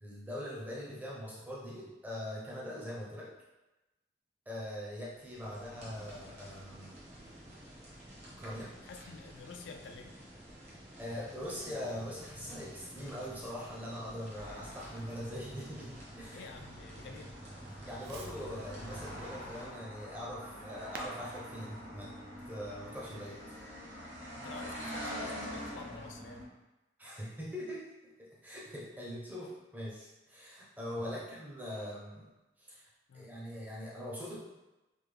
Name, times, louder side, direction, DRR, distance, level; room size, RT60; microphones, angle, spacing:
voice 1, 0.0-3.3 4.5-7.0 8.4-8.7 11.0-16.5 17.8-22.1 22.5-23.4 27.0-32.3 32.6-32.9 33.1-34.4, equal, 10° right, -5 dB, 0.6 m, -42 dB
sound 1, 4.9-19.7, right 1 dB, 35° right, 0.9 m, -52 dB
voice 2, 8.8-10.2 16.3-17.4 24.3-26.5 31.1-31.2 33.1-33.3, left 4 dB, 75° left, 4 dB, 0.3 m, -49 dB
Fireworks, 12.1-23.5, right 3 dB, 60° right, 0.4 m, -57 dB
sound 2, 14.3-26.4, equal, 90° right, 0.9 m, -45 dB
3.4 x 2.1 x 3.3 m, 1.0 s
head